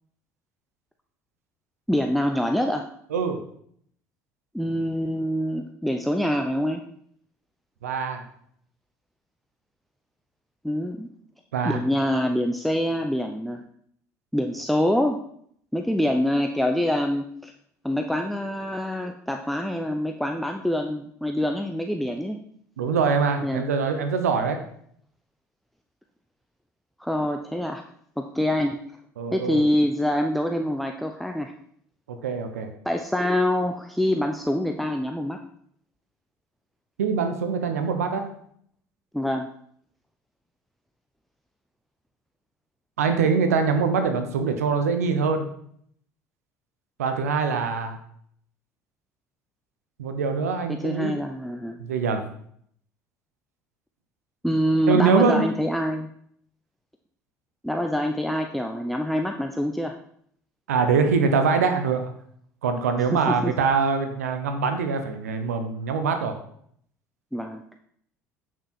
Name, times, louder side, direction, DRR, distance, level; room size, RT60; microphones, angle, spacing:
voice 1, 1.9-2.9 4.5-6.8 10.6-11.1 11.6-13.6 14.3-15.2 15.7-17.5 17.8-22.4 23.4-23.6 27.0-27.8 28.2-28.8 29.3-31.5 32.8-35.4 39.1-39.5 50.7-51.8 54.4-56.1 57.6-60.0 63.1-63.5 67.3-67.6, left 1 dB, ahead, 5 dB, 0.7 m, -25 dB
voice 2, 7.8-8.2 11.5-11.8 22.8-24.6 29.2-29.6 32.1-32.7 37.0-38.3 43.0-45.5 47.0-48.0 50.0-51.1 51.8-52.2 54.9-55.5 60.7-62.1 62.6-66.4, right 5 dB, 85° right, 7 dB, 0.9 m, -23 dB
8.4 x 6.1 x 4.4 m, 0.65 s
hypercardioid pair, 70°, 8 cm